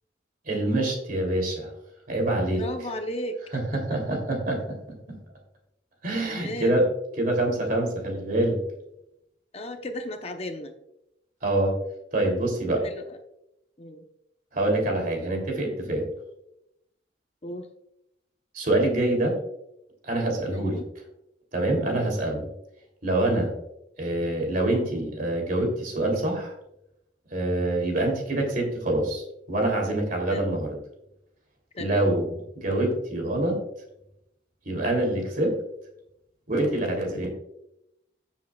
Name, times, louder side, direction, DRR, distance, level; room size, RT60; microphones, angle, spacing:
voice 1, 0.4-1.7 2.1-2.6 3.5-5.2 6.0-6.8 7.2-8.6 11.4-11.7 12.1-12.8 14.5-16.1 18.5-19.3 20.1-20.8 21.5-22.5 23.0-23.5 24.0-26.5 27.3-29.2 29.5-30.7 31.8-32.3 32.6-33.6 34.6-35.6 36.5-37.3, right 1 dB, 50° right, 1 dB, 2.9 m, -25 dB
voice 2, 2.5-3.4 3.7-4.0 6.3-6.8 9.5-10.7 12.8-13.2 13.8-14.0 17.4-17.7 20.5-20.8 30.3-30.5 31.7-32.1, left 1 dB, 35° left, 5 dB, 0.8 m, -35 dB
15.0 x 7.3 x 2.3 m, 0.82 s
head